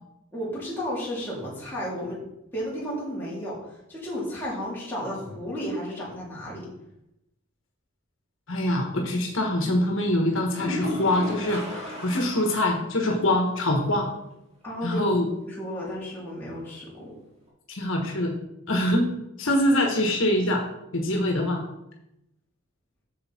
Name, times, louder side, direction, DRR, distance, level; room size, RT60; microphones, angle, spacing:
voice 1, 0.3-2.2 2.5-6.6 14.6-15.2 15.4-17.2, equal, 10° left, -7 dB, 3.2 m, -33 dB
voice 2, 8.5-14.1 14.8-15.3 17.7-18.3 18.7-19.1 19.4-20.6 20.9-21.6, left 1 dB, 70° left, 2 dB, 1.3 m, -24 dB
sound 1, 10.5-12.7 13.1-13.2 13.6-13.7 17.5-17.6, left 1 dB, 30° right, 2.5 m, -33 dB
7.8 x 6.7 x 4.3 m, 0.86 s
head